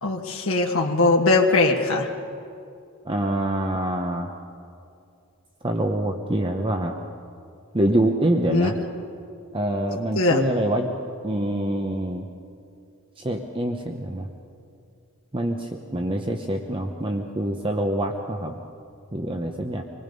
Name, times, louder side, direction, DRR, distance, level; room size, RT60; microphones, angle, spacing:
voice 1, 0.0-2.1 8.5-8.7 10.1-10.4, left 3 dB, 75° left, 0 dB, 1.5 m, -20 dB
voice 2, 3.1-4.3 5.6-6.9 7.7-8.7 9.5-10.9 11.2-12.2 13.2-14.3 15.3-18.6 19.1-19.8, right 1 dB, 25° right, 3 dB, 0.9 m, -25 dB
25.5 x 20.0 x 5.4 m, 2.5 s
head